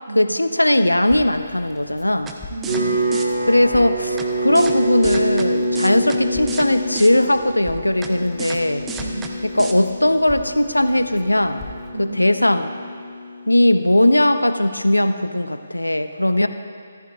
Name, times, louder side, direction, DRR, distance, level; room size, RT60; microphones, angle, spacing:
voice 1, 0.2-2.3 3.5-8.8 9.6-11.6 12.0-12.8 13.5-16.5, left 1 dB, 90° left, 10 dB, 0.6 m, -18 dB
Crackle, 1.0-11.9, left 3 dB, 5° left, 1.0 m, -42 dB
sound 1, 2.3-2.4 2.6-2.8 3.1-3.2 4.2-4.3 4.5-4.7 5.0-5.5 5.7-6.2 6.5-6.7 6.9-7.1 8.0-8.1 8.4-8.6 8.9-9.3 9.6-9.7, right 5 dB, 10° right, 0.6 m, -32 dB
voice 2, 2.5-3.1 9.0-9.4 11.9-12.2 16.2-16.4, right 2 dB, 75° right, -1 dB, 1.8 m, -33 dB
sound 2, 2.7-13.7, right 1 dB, 50° right, 3.2 m, -26 dB
14.5 x 14.0 x 2.4 m, 2.2 s
figure-of-eight pair, 145°, 0 cm